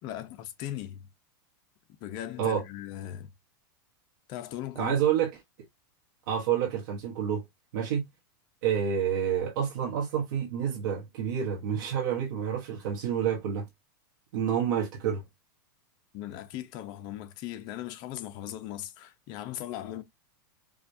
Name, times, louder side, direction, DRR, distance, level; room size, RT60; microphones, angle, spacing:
voice 1, 0.0-1.1 2.0-3.3 4.3-5.0 16.1-20.0, left 12 dB, 40° left, 0.8 m, -38 dB
voice 2, 4.8-5.3 6.3-7.4 7.7-8.0 8.6-13.7 14.3-15.2, right 8 dB, 65° right, 1.2 m, -28 dB
4.9 x 2.5 x 2.7 m
supercardioid pair, 145°, 11 cm